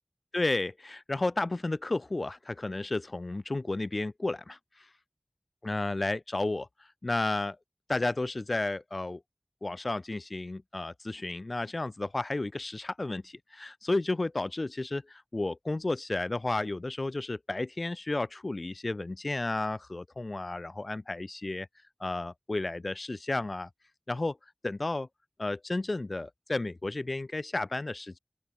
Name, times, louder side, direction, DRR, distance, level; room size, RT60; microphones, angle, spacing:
voice 1, 0.3-4.9 5.6-6.7 7.0-7.6 7.9-9.2 9.6-21.7 22.0-23.7 24.1-24.4 24.6-25.1 25.4-28.2, left 2 dB, 75° left, 4.5 m, -32 dB
open air
wide cardioid pair, 40°, 0 cm